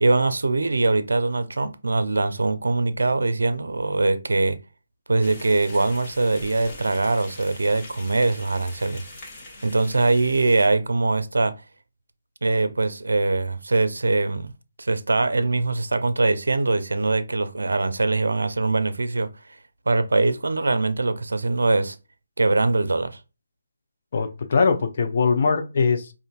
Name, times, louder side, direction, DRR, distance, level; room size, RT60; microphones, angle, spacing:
voice 1, 0.0-4.6 5.1-9.1 9.6-11.5 12.4-14.5 14.8-19.3 19.9-22.0 22.4-23.2, right 3 dB, 70° right, 0.5 m, -22 dB
sound 1, 5.2-10.7, left 2 dB, 25° left, 1.1 m, -43 dB
voice 2, 24.1-26.1, left 5 dB, 45° left, 0.5 m, -21 dB
5.1 x 2.5 x 2.4 m
figure-of-eight pair, 145°, 0 cm